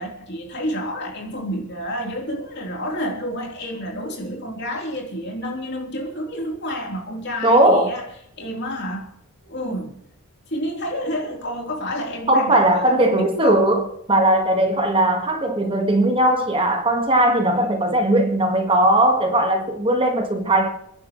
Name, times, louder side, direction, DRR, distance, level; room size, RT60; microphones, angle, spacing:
voice 1, 0.0-8.0 8.4-9.1 9.4-10.0 10.5-13.6, equal, 50° left, 3.5 m, -29 dB
voice 2, 7.4-7.9 12.3-20.7, right 1 dB, 25° right, 1.6 m, -18 dB
30.0 x 10.5 x 3.1 m
head